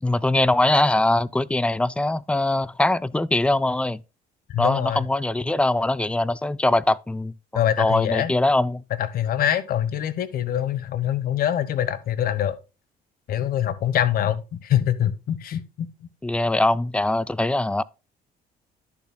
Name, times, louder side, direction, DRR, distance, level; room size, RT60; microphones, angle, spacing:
voice 1, 0.0-4.0 4.6-8.8 16.2-17.8, left 2 dB, 5° left, 0.3 m, -22 dB
voice 2, 4.5-5.0 7.5-8.3 9.0-12.6 13.3-15.9, left 10 dB, 60° left, 1.1 m, -24 dB
11.5 x 7.0 x 2.2 m
cardioid pair, 110°, 17 cm